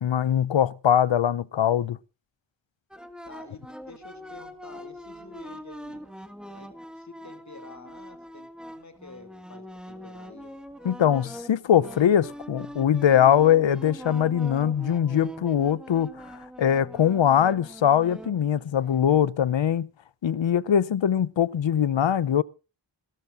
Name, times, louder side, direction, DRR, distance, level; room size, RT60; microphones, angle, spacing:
voice 1, 0.0-2.0 10.8-19.9 20.2-22.4, left 9 dB, 70° left, 0.7 m, -22 dB
sound 1, 2.9-19.2, equal, ahead, 1.6 m, -43 dB
voice 2, 3.3-6.0 6.5-10.6, left 3 dB, 35° left, 3.0 m, -48 dB
26.5 x 13.0 x 2.5 m
wide cardioid pair, 90°, 47 cm